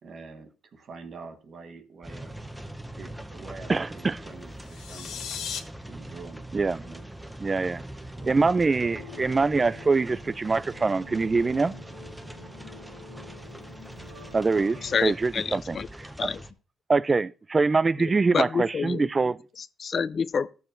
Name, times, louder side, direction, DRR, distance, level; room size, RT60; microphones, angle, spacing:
voice 1, 0.0-2.7 3.0-5.3 5.9-6.5 6.8-7.0 8.2-8.6, right 4 dB, 55° right, 1.2 m, -45 dB
sound 1, 2.0-16.5, right 1 dB, 5° right, 0.7 m, -42 dB
voice 2, 3.7-4.2 6.5-6.8 7.4-7.8 8.3-11.7 14.3-15.8 16.9-19.4, right 4 dB, 30° right, 0.3 m, -24 dB
sound 2, 4.5-5.6, left 8 dB, 75° left, 0.8 m, -36 dB
sound 3, 8.7-15.0, left 2 dB, 90° right, 3.6 m, -47 dB
voice 3, 14.8-15.9 16.2-16.4 18.0-19.1 19.6-20.5, left 6 dB, 45° left, 0.4 m, -28 dB
13.5 x 6.9 x 2.5 m
cardioid pair, 90°, 0 cm